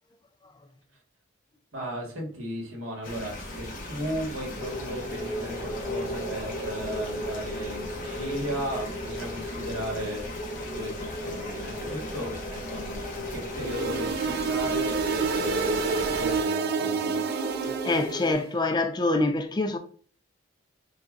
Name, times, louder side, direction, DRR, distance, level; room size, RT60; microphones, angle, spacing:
voice 1, 1.7-10.2 10.6-17.2, equal, 85° right, 1.5 m, -36 dB
sound 1, 3.0-16.4, left 1 dB, 40° left, 0.9 m, -38 dB
sound 2, 4.6-18.3, equal, 10° right, 0.8 m, -36 dB
sound 3, 13.6-18.4, right 5 dB, 50° right, 0.4 m, -28 dB
voice 2, 17.8-19.8, left 2 dB, 20° left, 0.4 m, -25 dB
6.5 x 2.3 x 2.5 m
head